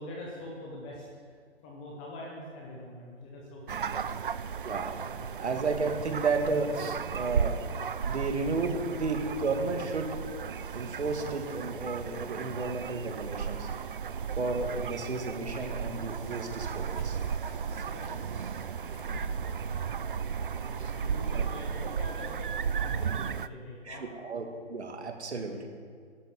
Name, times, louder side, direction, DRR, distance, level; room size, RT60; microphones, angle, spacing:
voice 1, 0.0-1.4 1.6-4.2 5.0-5.3 17.7-18.3 18.8-19.1 20.3-24.0 25.5-25.6, left 1 dB, 10° left, -2 dB, 0.7 m, -44 dB
sound 1, 3.7-23.5, right 7 dB, 50° right, 0.4 m, -35 dB
voice 2, 4.6-5.0 5.4-7.6 8.1-10.1 10.7-13.7 14.4-17.2 17.7-17.8 21.3-21.4 23.8-25.7, right 3 dB, 65° right, 4 dB, 2.5 m, -32 dB
sound 2, 15.5-22.5, left 1 dB, 65° left, 4.1 m, -50 dB
11.5 x 10.5 x 7.2 m, 2.1 s
hypercardioid pair, 160°, 36 cm